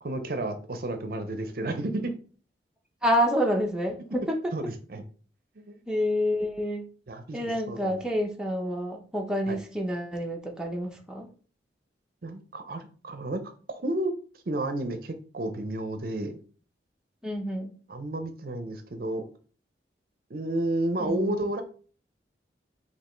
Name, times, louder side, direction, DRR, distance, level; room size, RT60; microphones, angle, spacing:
voice 1, 0.0-2.0 4.5-5.0 5.6-5.7 7.1-7.4 7.7-7.9 9.5-9.6 12.2-13.4 13.7-14.1 14.5-16.4 17.9-19.2 20.3-21.6, right 1 dB, 55° right, 7 dB, 0.5 m, -31 dB
voice 2, 3.0-4.4 5.9-6.9 7.3-11.3 17.2-17.8 21.0-21.4, equal, 5° right, 0 dB, 0.6 m, -28 dB
5.4 x 2.7 x 3.0 m, 0.40 s
head